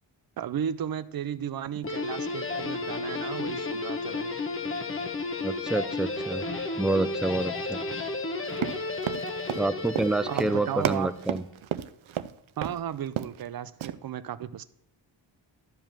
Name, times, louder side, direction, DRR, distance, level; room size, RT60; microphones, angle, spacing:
voice 1, 0.4-4.3 10.3-11.1 12.6-14.6, right 9 dB, 50° right, 0.6 m, -34 dB
Guitar, 1.8-11.2, left 3 dB, 25° left, 1.1 m, -33 dB
voice 2, 5.4-6.4 6.8-7.8 9.6-11.4, right 2 dB, ahead, 0.4 m, -28 dB
Run, 8.5-12.3 12.6-12.8 13.1-13.5 13.8-13.9, right 11 dB, 85° right, 0.7 m, -32 dB
12.5 x 5.1 x 7.4 m
wide cardioid pair, 145°, 46 cm